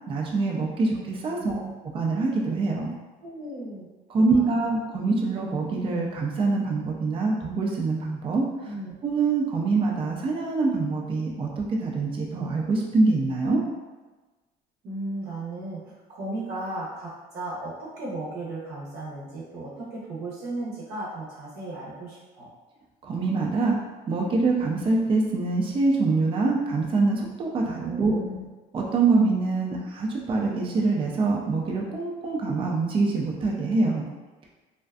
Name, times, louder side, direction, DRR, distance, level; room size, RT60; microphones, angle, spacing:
voice 1, 0.1-1.6 1.9-2.9 4.1-8.5 9.0-13.6 23.0-23.8 24.1-28.2 28.7-34.1, right 3 dB, 30° right, -1 dB, 0.4 m, -24 dB
voice 2, 1.4-1.7 3.2-3.9 4.2-4.6 8.6-8.9 14.8-22.5 27.9-28.5, right 2 dB, 70° right, -6 dB, 0.7 m, -35 dB
2.5 x 2.3 x 2.3 m, 1.2 s
cardioid pair, 110°, 17 cm